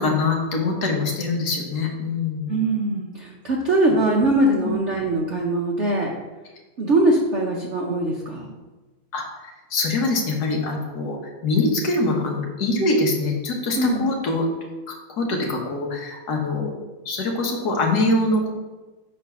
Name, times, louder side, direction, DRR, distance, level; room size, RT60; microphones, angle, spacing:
voice 1, 0.0-2.6 9.1-9.2 9.7-14.5 14.9-16.7 17.0-18.5, left 2 dB, 55° left, 0 dB, 1.5 m, -23 dB
voice 2, 2.5-6.1 6.8-8.5 13.8-14.1, right 1 dB, 90° right, -2 dB, 0.6 m, -21 dB
5.5 x 4.4 x 5.5 m, 1.2 s
omnidirectional pair, 2.3 m